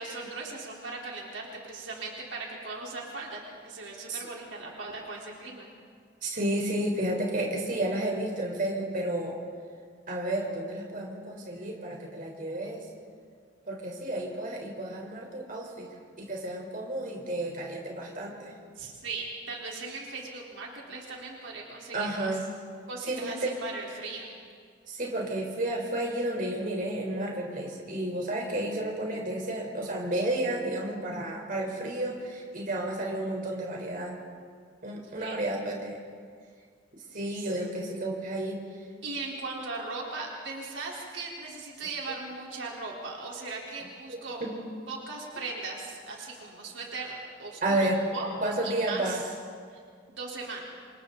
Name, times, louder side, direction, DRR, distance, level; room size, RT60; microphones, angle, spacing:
voice 1, 0.0-5.7 18.8-22.3 22.9-24.3 35.2-35.4 37.4-37.5 39.0-44.5 44.9-49.2 49.7-49.8 50.1-50.6, right 3 dB, 80° right, -2 dB, 4.0 m, -38 dB
voice 2, 6.2-9.4 10.1-12.9 13.7-15.9 16.2-18.6 21.9-22.4 23.0-23.5 24.9-34.2 34.8-36.0 37.1-38.6 44.1-44.6 47.6-48.0 48.4-49.2, right 1 dB, 45° right, -1 dB, 4.1 m, -31 dB
28.0 x 27.0 x 4.0 m, 2.1 s
head